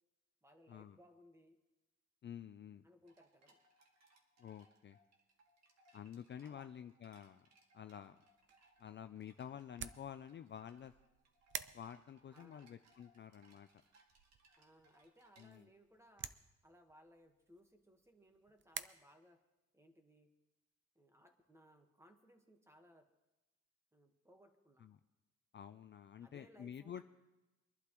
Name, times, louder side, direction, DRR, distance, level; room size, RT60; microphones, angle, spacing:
voice 1, 0.4-1.6 2.8-3.6 6.4-6.7 12.3-12.7 14.6-16.3 16.6-19.4 19.7-20.3 20.9-23.1 23.9-24.9 26.2-27.0, equal, 10° right, 5 dB, 1.4 m, -65 dB
voice 2, 2.2-2.8 4.4-5.0 5.9-7.5 7.7-8.2 8.8-10.9 11.7-13.7 15.4-15.7 24.8-25.0 25.5-27.0, left 9 dB, 40° left, 10 dB, 0.4 m, -50 dB
sound 1, 3.1-15.5, right 2 dB, 60° right, 2.0 m, -70 dB
sound 2, 8.3-18.8, right 8 dB, 40° right, 0.5 m, -52 dB
24.0 x 11.5 x 3.0 m, 1.0 s
cardioid pair, 130°, 30 cm